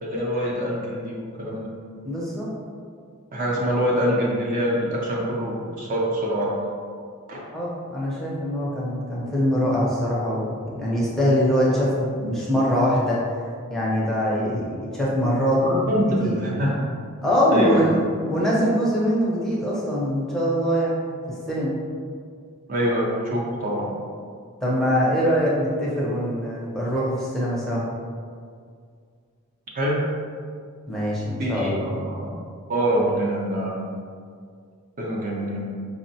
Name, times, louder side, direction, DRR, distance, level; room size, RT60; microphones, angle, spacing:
voice 1, 0.0-1.7 3.3-6.5 7.3-7.4 15.6-16.9 17.5-17.9 22.7-23.9 29.7-30.2 31.4-32.3 32.7-33.9 35.0-35.6, equal, 40° right, -3 dB, 0.5 m, -25 dB
voice 2, 2.0-2.5 3.5-3.6 7.5-13.2 13.7-15.6 16.2-16.3 17.2-18.0 18.3-21.0 21.5-21.7 24.6-27.9 30.9-31.9, equal, ahead, -7 dB, 0.6 m, -23 dB
5.0 x 2.1 x 2.7 m, 2.1 s
head